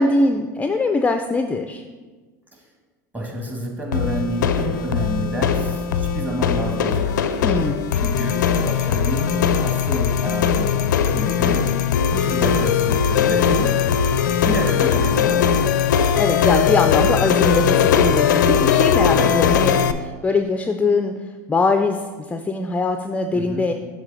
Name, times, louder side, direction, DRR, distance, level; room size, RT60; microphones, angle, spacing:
voice 1, 0.0-1.8 7.4-7.9 16.2-21.1 21.5-22.0 22.3-23.7, left 3 dB, 15° left, 6 dB, 0.4 m, -22 dB
voice 2, 3.1-7.2 7.9-11.7 12.0-13.8 14.2-15.5 15.8-15.9 19.1-19.4 23.3-23.7, right 1 dB, 15° right, 0 dB, 1.9 m, -29 dB
sound 1, 3.9-19.9, left 7 dB, 80° left, 0.4 m, -19 dB
7.3 x 3.5 x 6.3 m, 1.4 s
hypercardioid pair, 85°, 10 cm